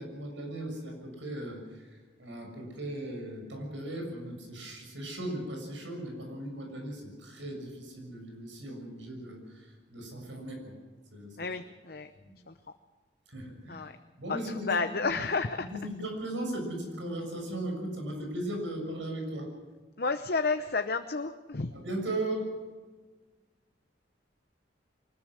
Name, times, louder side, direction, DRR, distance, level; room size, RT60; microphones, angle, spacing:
voice 1, 0.0-10.7 11.1-11.5 12.3-12.4 13.3-13.9 14.2-14.7 15.7-19.5 21.7-22.5, right 1 dB, 85° right, 3 dB, 6.7 m, -37 dB
voice 2, 11.4-12.1 12.5-12.6 13.7-13.9 14.3-15.7 20.0-21.7, left 4 dB, 55° left, 7 dB, 0.8 m, -31 dB
24.0 x 20.5 x 6.4 m, 1.4 s
head